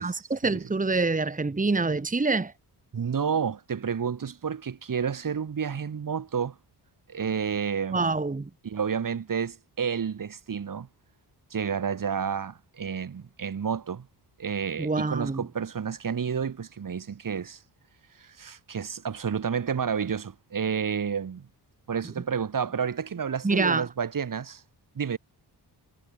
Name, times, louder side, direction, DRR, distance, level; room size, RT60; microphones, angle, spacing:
voice 1, 0.0-2.5 7.9-8.5 14.8-15.4 23.4-23.9, right 3 dB, 20° right, 2.3 m, -26 dB
voice 2, 2.9-6.6 7.1-8.1 8.6-10.9 11.5-14.1 14.4-17.6 18.2-21.5 21.9-24.6 25.0-25.2, right 7 dB, 50° right, 4.2 m, -30 dB
wide cardioid pair, 145°, 41 cm